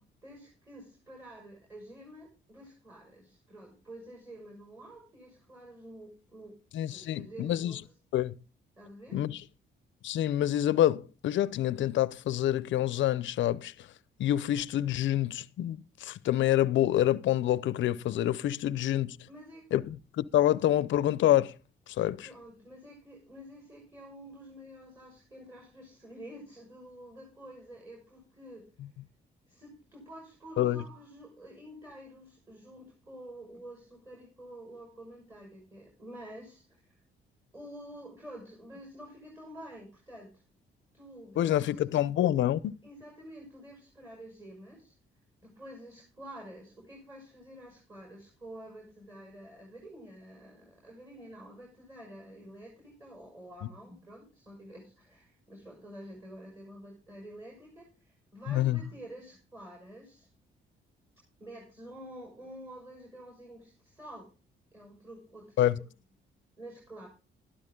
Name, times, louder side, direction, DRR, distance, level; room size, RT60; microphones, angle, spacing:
voice 1, 0.2-6.6 6.9-7.9 8.8-9.2 19.3-19.6 22.2-28.7 29.5-36.9 37.5-40.4 40.9-41.8 42.8-44.9 45.4-60.3 61.4-64.3 64.7-65.9 66.6-67.1, right 1 dB, 10° right, 6.2 m, -49 dB
voice 2, 6.7-7.8 8.1-8.4 9.1-9.4 10.0-13.7 14.2-19.2 19.7-21.5 22.0-22.3 30.6-30.8 41.4-42.8 58.5-58.8 65.6-65.8, left 12 dB, 70° left, 0.7 m, -27 dB
12.5 x 12.0 x 3.8 m
cardioid pair, 90°, 20 cm